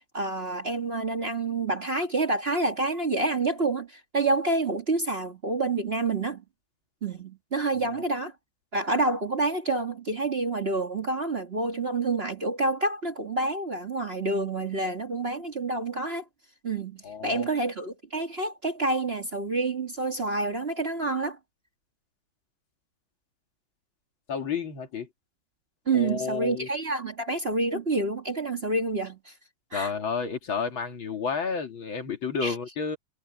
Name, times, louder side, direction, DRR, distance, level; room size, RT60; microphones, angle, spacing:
voice 1, 0.1-6.4 7.0-8.3 8.7-16.2 16.6-21.4 25.9-29.3 29.7-29.9 32.4-32.5, right 3 dB, 30° right, 1.6 m, -28 dB
voice 2, 17.0-17.5 24.3-25.1 25.9-26.7 29.7-33.0, left 5 dB, 65° left, 3.1 m, -31 dB
omnidirectional pair, 2.3 m